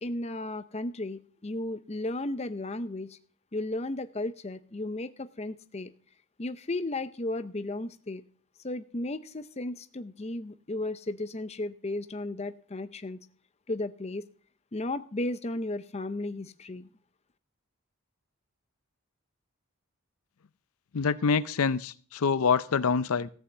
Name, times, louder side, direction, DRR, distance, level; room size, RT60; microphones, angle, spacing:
voice 1, 0.0-3.2 3.5-5.9 6.4-8.2 8.6-13.2 13.7-14.3 14.7-16.9, left 2 dB, 30° left, 11 dB, 0.6 m, -34 dB
voice 2, 20.9-23.3, left 5 dB, 75° left, 16 dB, 0.5 m, -26 dB
14.5 x 5.6 x 8.0 m, 0.43 s
head